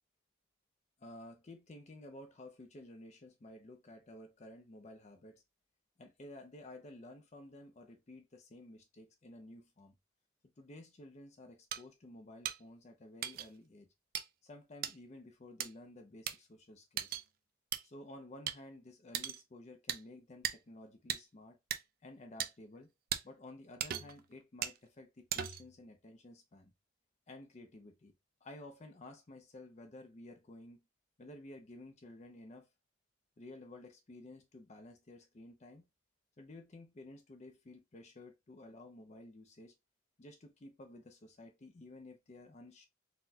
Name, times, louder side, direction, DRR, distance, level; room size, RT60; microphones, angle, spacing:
voice 1, 1.0-5.4 6.0-10.0 10.6-13.9 14.4-17.2 17.8-21.6 22.0-22.9 23.2-26.7 27.3-28.1 28.4-30.8 31.2-32.7 33.4-35.8 36.4-39.7 40.2-42.9, left 1 dB, 35° left, 0.5 m, -53 dB
sound 1, 11.7-11.8 12.4-12.6 13.2-13.5 14.1-14.2 14.8-14.9 15.6-15.7 16.3-16.4 17.0-17.2 17.7-17.8 18.5-18.6 19.1-19.4 19.9-20.0 20.4-20.6 21.1-21.2 21.7-21.8 22.4-22.5 23.1-23.2 23.8-24.2 24.6-24.8 25.3-25.7, right 10 dB, 50° right, 0.3 m, -37 dB
4.0 x 2.1 x 2.7 m
head